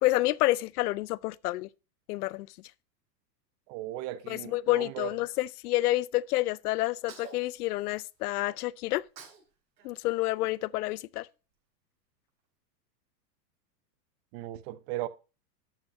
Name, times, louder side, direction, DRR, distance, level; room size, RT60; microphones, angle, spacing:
voice 1, 0.0-1.7 2.1-2.5 4.3-9.0 9.8-11.3, left 17 dB, 65° left, 0.6 m, -29 dB
voice 2, 3.7-5.1 14.3-15.1, right 16 dB, 40° right, 0.8 m, -37 dB
Sneeze, 6.8-8.4 8.9-9.5 9.8-11.2, right 6 dB, 65° right, 5.2 m, -52 dB
12.5 x 5.6 x 5.1 m
supercardioid pair, 140°, 49 cm